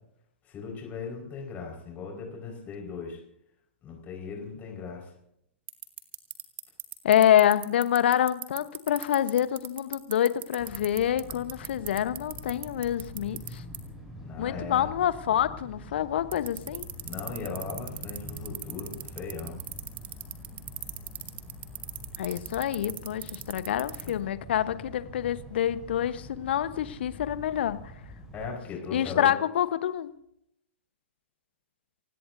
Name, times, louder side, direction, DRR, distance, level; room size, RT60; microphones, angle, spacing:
voice 1, 0.4-3.2 3.8-5.1 14.2-14.9 17.0-19.6 24.0-24.1 28.3-29.3, left 5 dB, 25° left, 0 dB, 4.9 m, -38 dB
sound 1, 5.7-13.5 13.7-13.8 16.3-24.1, right 12 dB, 25° right, 1.9 m, -36 dB
voice 2, 7.0-13.6 14.4-16.9 22.2-27.8 28.9-30.1, left 10 dB, 60° left, 14 dB, 1.0 m, -26 dB
sound 2, 10.6-28.6, left 1 dB, 5° right, 7.0 m, -45 dB
29.5 x 17.0 x 2.7 m, 0.75 s
figure-of-eight pair, 110°, 7 cm